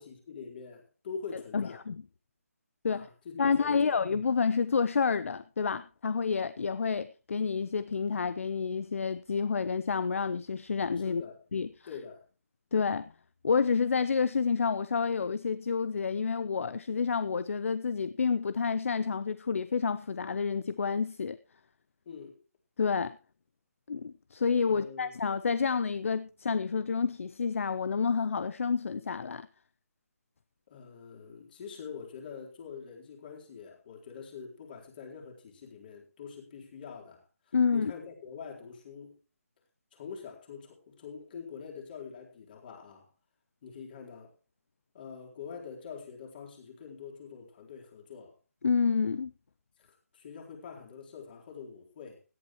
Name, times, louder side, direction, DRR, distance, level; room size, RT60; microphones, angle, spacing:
voice 1, 0.0-1.8 2.9-3.9 11.0-11.4 11.9-12.2 22.1-22.4 24.7-25.2 30.7-39.2 39.9-43.1 43.6-44.3 44.9-48.4 49.8-52.2, left 6 dB, 35° left, 3.9 m, -45 dB
voice 2, 1.5-2.0 2.8-3.1 3.4-11.2 11.5-11.7 12.7-13.1 13.4-21.4 22.8-23.2 23.9-29.5 37.5-37.9 48.6-49.3, left 5 dB, 60° left, 0.6 m, -29 dB
17.0 x 11.0 x 3.1 m
figure-of-eight pair, 155°, 8 cm